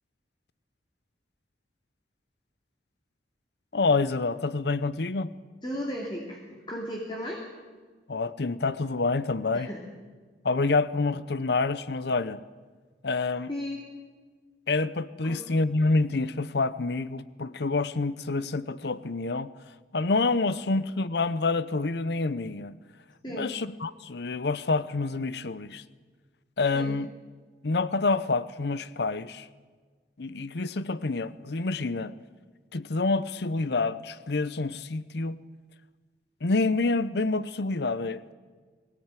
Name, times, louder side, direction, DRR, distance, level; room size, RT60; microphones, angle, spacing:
voice 1, 3.7-5.3 8.1-9.7 10.4-12.4 13.0-13.5 14.7-19.5 19.9-22.7 23.3-25.8 26.6-27.1 27.6-29.5 30.2-32.1 32.7-35.4 36.4-38.3, left 3 dB, 65° left, 16 dB, 0.7 m, -27 dB
voice 2, 5.6-7.4 9.5-9.8 13.5-13.8 15.2-15.4 23.2-23.5 26.7-27.0, equal, 25° left, -1 dB, 2.8 m, -35 dB
22.5 x 17.5 x 9.1 m, 1.5 s
head